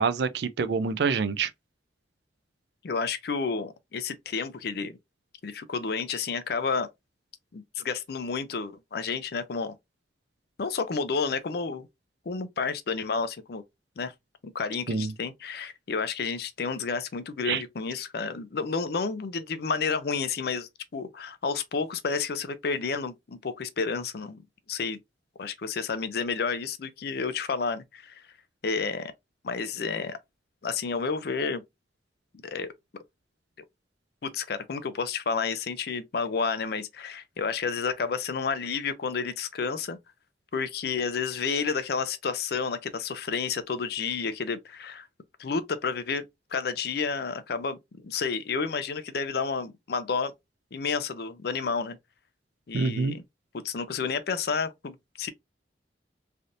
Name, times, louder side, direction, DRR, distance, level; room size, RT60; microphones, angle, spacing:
voice 1, 0.0-1.5 14.9-15.1 17.4-17.6 52.7-53.2, right 5 dB, 65° right, 0.4 m, -26 dB
voice 2, 2.8-5.0 5.4-6.9 7.5-9.7 10.6-11.9 12.3-13.6 14.0-14.1 14.5-24.4 24.7-25.0 25.4-28.2 28.6-29.1 29.4-30.2 30.6-31.6 32.4-32.7 34.2-40.0 40.5-45.1 45.4-46.3 46.5-50.3 50.7-52.0 52.7-53.2 53.5-55.3, left 5 dB, 55° left, 0.4 m, -30 dB
3.3 x 2.6 x 2.5 m
head